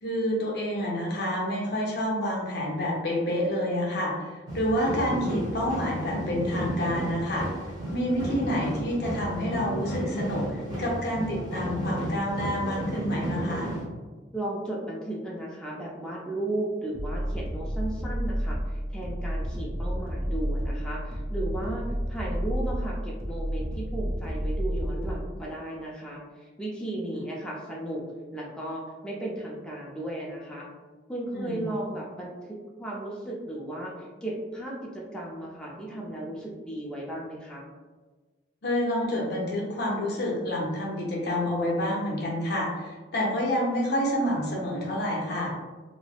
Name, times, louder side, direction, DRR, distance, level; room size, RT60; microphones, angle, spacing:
voice 1, 0.0-7.5 7.9-13.7 31.3-31.6 38.6-45.5, equal, 65° left, -3 dB, 0.7 m, -28 dB
sound 1, 4.5-13.8, equal, 20° right, 0.9 m, -33 dB
voice 2, 14.3-28.0 28.3-30.7 31.1-33.9 34.2-37.7, right 1 dB, 5° left, -4 dB, 0.4 m, -35 dB
sound 2, 16.9-25.3, equal, 55° right, 0.6 m, -31 dB
3.1 x 2.0 x 2.3 m, 1.3 s
head